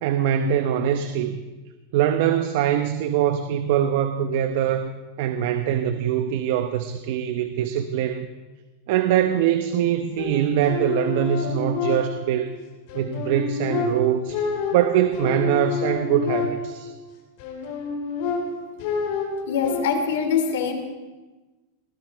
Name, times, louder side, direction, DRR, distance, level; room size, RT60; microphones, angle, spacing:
voice 1, 0.0-1.4 1.9-4.9 5.2-8.3 8.9-12.5 12.9-16.9, right 10 dB, 55° right, 8 dB, 0.9 m, -23 dB
sound 1, 10.2-12.5 12.9-16.9 17.4-19.9, left 5 dB, 55° left, 4.0 m, -28 dB
voice 2, 19.5-20.7, left 6 dB, 80° left, 6 dB, 2.7 m, -23 dB
20.0 x 14.5 x 4.6 m, 1.2 s
supercardioid pair, 155°, 0 cm